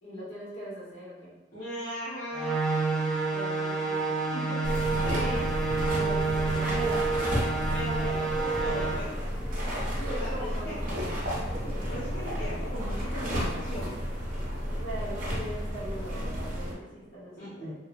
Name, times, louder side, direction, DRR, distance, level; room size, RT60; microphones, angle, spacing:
voice 1, 0.0-1.3 3.3-5.0 5.8-6.9 9.9-10.8 14.8-17.7, right 1 dB, 90° left, -7 dB, 1.1 m, -41 dB
voice 2, 1.5-2.5 5.0-5.4 6.7-7.0 7.7-9.1 10.2-10.7 11.9-13.9 17.4-17.7, equal, 40° left, -13 dB, 0.9 m, -37 dB
sound 1, 2.3-8.9, right 4 dB, ahead, 0.4 m, -28 dB
sound 2, 4.6-16.7, equal, 45° right, 0.6 m, -32 dB
2.7 x 2.0 x 2.5 m, 1.1 s
head